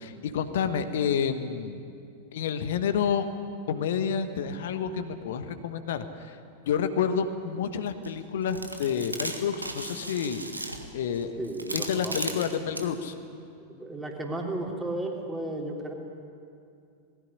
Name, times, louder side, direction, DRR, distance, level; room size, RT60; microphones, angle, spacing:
voice 1, 0.0-1.8 2.3-3.3 3.7-6.4 6.7-10.4 10.9-11.4 11.7-13.1, left 7 dB, 60° left, 9 dB, 1.2 m, -29 dB
sound 1, 8.0-8.1 8.5-12.9, right 2 dB, 85° right, 1.6 m, -36 dB
voice 2, 11.4-12.1 12.4-12.5 13.7-15.9, right 2 dB, 10° right, 0 dB, 3.4 m, -34 dB
20.0 x 16.0 x 10.0 m, 2.5 s
figure-of-eight pair, 90°, 0 cm